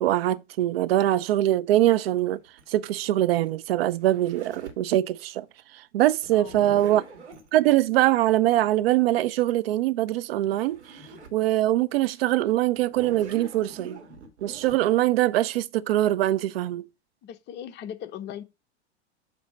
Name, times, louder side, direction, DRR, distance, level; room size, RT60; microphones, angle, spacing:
voice 1, 0.0-2.4 2.7-5.5 5.9-7.0 7.5-10.8 11.3-14.0 14.4-16.9, right 14 dB, 60° right, 0.6 m, -23 dB
Zipper (clothing), 2.2-4.9 6.2-7.5 10.1-10.2 10.4-11.4 11.9-12.0 12.8-14.8, right 3 dB, 90° right, 1.7 m, -44 dB
voice 2, 17.2-18.4, left 10 dB, 30° left, 0.7 m, -38 dB
8.0 x 2.8 x 5.4 m
hypercardioid pair, 100°, 33 cm